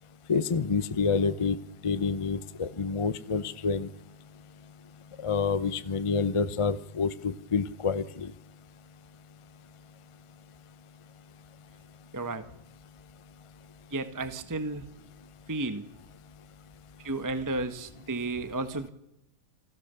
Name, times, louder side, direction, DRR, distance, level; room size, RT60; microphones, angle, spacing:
voice 1, 0.3-1.6 1.8-3.9 5.2-8.3, left 5 dB, 45° left, 13 dB, 0.4 m, -28 dB
voice 2, 12.1-12.5 13.9-14.8 15.5-15.8 17.0-18.9, right 2 dB, 10° right, 10 dB, 1.1 m, -32 dB
28.5 x 19.0 x 7.0 m, 0.87 s
omnidirectional pair, 2.2 m